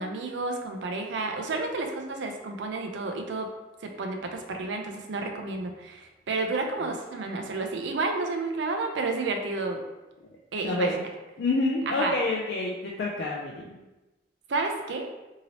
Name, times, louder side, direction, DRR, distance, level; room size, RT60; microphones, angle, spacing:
voice 1, 0.0-3.5 3.8-9.8 10.5-11.1 11.9-12.1 14.5-15.1, right 3 dB, 85° right, 3 dB, 0.5 m, -31 dB
voice 2, 10.6-11.0 11.4-13.6, left 2 dB, 65° left, -3 dB, 0.4 m, -27 dB
2.8 x 2.8 x 2.9 m, 1.1 s
head